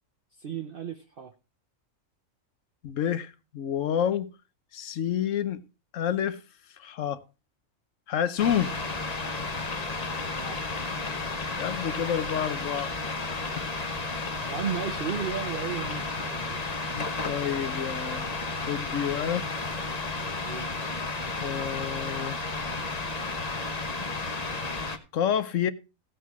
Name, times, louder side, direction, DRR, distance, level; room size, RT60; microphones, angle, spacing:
voice 1, 0.4-1.3 10.3-10.8 14.5-16.6 20.4-20.7, right 7 dB, 45° right, 0.9 m, -34 dB
voice 2, 2.8-4.3 4.7-5.6 5.9-6.4 6.8-7.2 8.1-8.8 11.6-12.9 13.2-13.5 16.9-18.3 18.7-19.5 21.4-22.4 25.1-25.7, left 9 dB, 70° left, 1.2 m, -29 dB
sound 1, 8.4-25.0, left 3 dB, 30° left, 1.2 m, -32 dB
sound 2, 9.7-9.8 10.0-11.1 11.4-11.6 11.9-12.0 12.3-12.4 12.8-12.9 13.4-13.5 14.3-14.4 15.1-15.2 15.9-16.0, left 8 dB, 50° left, 0.5 m, -41 dB
16.5 x 5.7 x 4.7 m
omnidirectional pair, 1.4 m